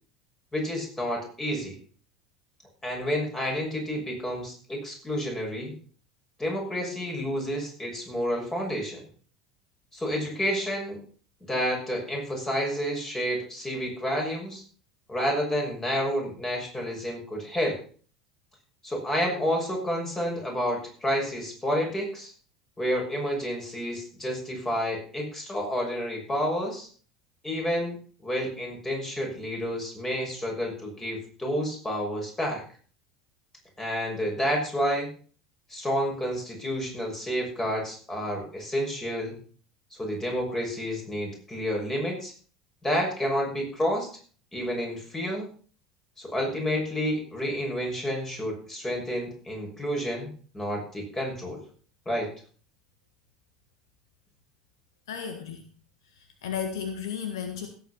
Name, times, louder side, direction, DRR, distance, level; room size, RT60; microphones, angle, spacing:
voice 1, 0.5-1.8 2.8-5.8 6.4-9.0 9.9-11.0 11.5-14.6 15.1-17.8 18.8-22.3 22.8-26.9 27.4-28.0 28.2-32.6 33.8-35.1 35.7-39.4 40.0-42.3 42.8-44.1 44.5-45.5 46.2-51.6 52.1-52.3, equal, 15° left, 0 dB, 6.3 m, -30 dB
voice 2, 55.1-55.6 56.2-57.7, left 7 dB, 70° left, 6 dB, 1.5 m, -34 dB
16.5 x 8.4 x 4.3 m, 0.42 s
figure-of-eight pair, 70°, 3 cm